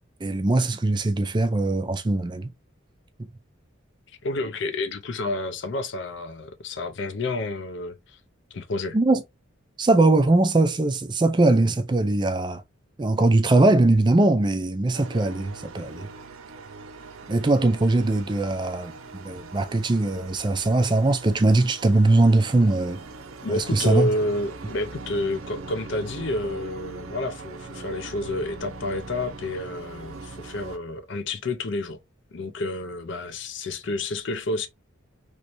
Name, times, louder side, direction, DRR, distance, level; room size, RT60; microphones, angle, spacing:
voice 1, 0.2-2.5 8.9-9.2 9.8-12.6 13.0-16.1 17.3-23.0 23.5-24.1, right 2 dB, 20° right, 0.3 m, -21 dB
voice 2, 4.2-8.2 8.5-9.0 23.4-32.0 32.3-34.7, left 2 dB, 55° left, 0.5 m, -29 dB
sound 1, 14.9-30.8, right 3 dB, 80° right, 0.5 m, -41 dB
3.1 x 2.6 x 2.9 m
head